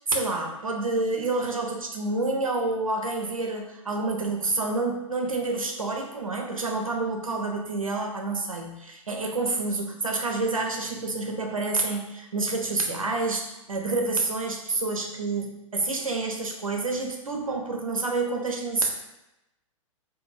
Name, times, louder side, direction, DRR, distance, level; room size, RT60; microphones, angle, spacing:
voice 1, 0.1-18.9, right 3 dB, 80° right, 2 dB, 0.5 m, -28 dB
2.6 x 2.2 x 3.0 m, 0.92 s
figure-of-eight pair, 105°, 17 cm